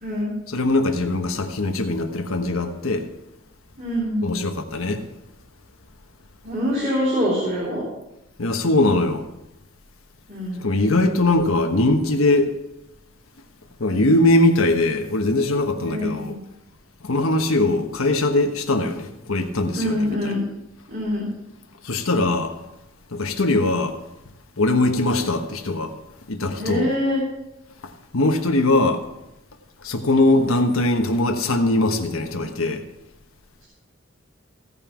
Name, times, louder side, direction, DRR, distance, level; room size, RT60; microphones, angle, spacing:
voice 1, 0.0-0.3 3.8-4.3 6.4-7.8 10.3-10.7 15.8-16.3 19.7-20.4 20.9-21.3 26.6-27.2, equal, 40° right, -8 dB, 3.3 m, -24 dB
voice 2, 0.5-3.1 4.2-5.0 8.4-9.3 10.6-12.5 13.8-16.3 17.0-20.4 21.8-22.6 23.1-24.0 24.6-25.9 26.3-26.9 27.8-29.0 29.8-32.8, left 2 dB, 85° left, 5 dB, 1.2 m, -21 dB
16.5 x 5.5 x 5.9 m, 0.93 s
head